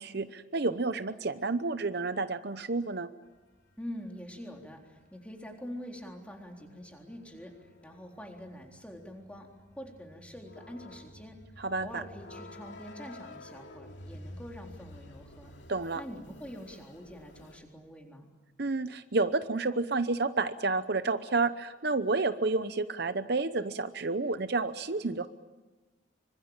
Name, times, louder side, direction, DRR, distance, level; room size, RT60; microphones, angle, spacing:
voice 1, 0.0-3.1 11.6-12.0 15.7-16.0 18.6-25.3, right 3 dB, 50° right, 11 dB, 0.8 m, -30 dB
sound 1, 3.3-17.6, left 1 dB, 65° left, 2.8 m, -51 dB
voice 2, 3.8-15.5 16.0-18.3, equal, 5° left, 1 dB, 3.8 m, -45 dB
26.0 x 25.5 x 9.0 m, 1.1 s
head